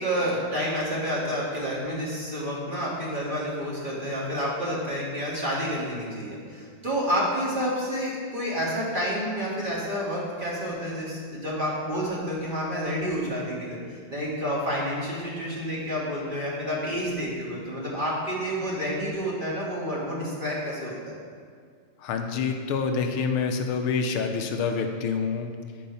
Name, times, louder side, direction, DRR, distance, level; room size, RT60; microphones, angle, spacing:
voice 1, 0.0-21.2, equal, 25° right, -6 dB, 1.8 m, -29 dB
voice 2, 22.0-25.5, left 5 dB, 85° left, 5 dB, 1.7 m, -27 dB
12.5 x 4.7 x 5.6 m, 2.1 s
omnidirectional pair, 2.3 m